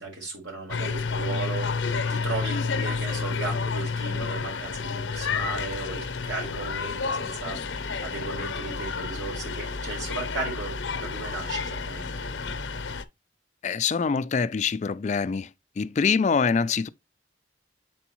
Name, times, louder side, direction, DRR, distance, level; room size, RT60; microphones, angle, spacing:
voice 1, 0.0-12.3, right 3 dB, 75° right, 3.9 m, -36 dB
sound 1, 0.7-13.0, left 4 dB, 85° left, 0.7 m, -30 dB
voice 2, 13.6-15.5 15.8-16.9, left 5 dB, 40° left, 0.3 m, -24 dB
6.9 x 4.5 x 3.0 m
head